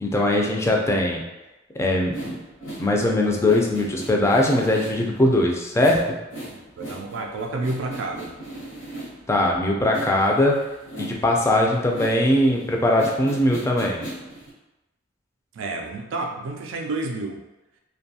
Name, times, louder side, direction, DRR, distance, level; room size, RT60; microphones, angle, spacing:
voice 1, 0.0-1.2 1.8-2.3 2.8-6.1 9.3-10.6 11.0-14.0, left 1 dB, 15° left, 0 dB, 0.3 m, -20 dB
sound 1, 2.1-9.4 9.8-14.5, right 1 dB, 70° left, 0.8 m, -38 dB
voice 2, 6.5-8.3 15.5-17.4, right 2 dB, 70° right, 3 dB, 0.3 m, -30 dB
2.6 x 2.2 x 2.7 m, 1.0 s
head